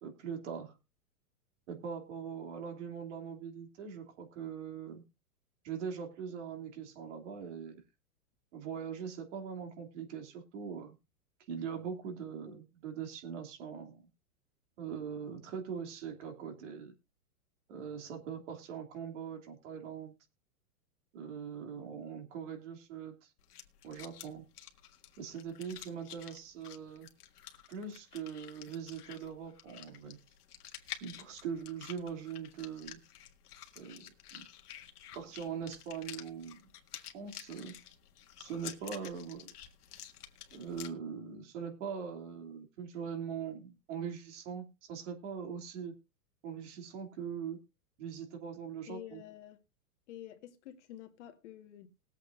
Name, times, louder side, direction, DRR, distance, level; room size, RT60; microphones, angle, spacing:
voice 1, 0.0-0.7 1.7-5.0 5.6-7.8 8.5-11.0 11.5-14.1 14.8-16.9 17.7-20.1 21.1-23.3 23.8-24.4 25.2-27.1 27.7-30.2 31.0-33.0 33.8-34.4 35.1-36.7 37.0-37.7 38.4-39.5 40.5-45.9 46.4-47.6 48.0-49.2, right 7 dB, 50° right, 2.9 m, -42 dB
sound 1, 23.4-40.9, left 10 dB, 80° left, 1.8 m, -50 dB
voice 2, 48.9-49.6 50.1-51.9, left 12 dB, 50° left, 1.7 m, -49 dB
20.5 x 7.9 x 2.6 m
supercardioid pair, 160°, 45 cm